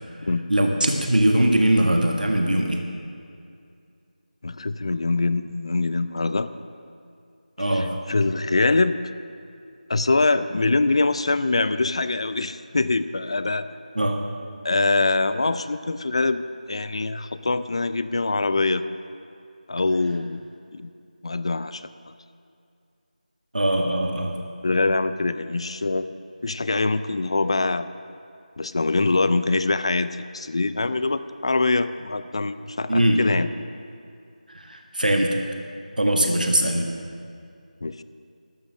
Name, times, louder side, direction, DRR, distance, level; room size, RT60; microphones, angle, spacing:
voice 1, 0.5-2.8 7.6-7.9 14.0-14.2 23.5-24.3 32.9-33.2 34.5-35.4 36.0-36.9, right 1 dB, 80° right, 2 dB, 1.7 m, -21 dB
voice 2, 4.4-6.5 7.6-9.0 9.9-13.7 14.6-16.4 16.7-18.8 19.7-20.4 20.7-20.9 21.2-21.8 24.6-26.1 26.4-27.9 28.6-33.5 37.8-38.0, left 3 dB, 40° left, 13 dB, 0.5 m, -23 dB
14.0 x 12.0 x 6.4 m, 2.4 s
figure-of-eight pair, 170°, 5 cm